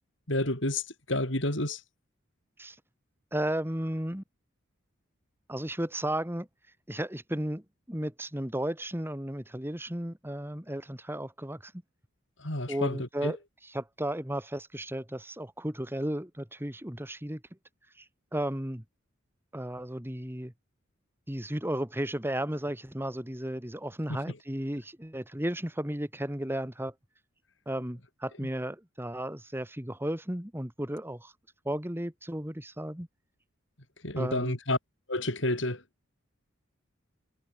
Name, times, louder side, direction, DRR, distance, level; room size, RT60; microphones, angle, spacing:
voice 1, 0.3-0.8 1.1-1.8 12.4-13.4 34.0-34.8 35.1-35.8, left 1 dB, 65° left, 7.7 m, -30 dB
voice 2, 3.3-4.2 5.5-6.5 6.9-11.7 12.7-13.4 13.6-17.4 18.0-18.8 19.5-20.5 21.3-26.9 27.7-31.3 31.6-33.1 34.2-34.6, right 1 dB, 10° right, 2.3 m, -34 dB
head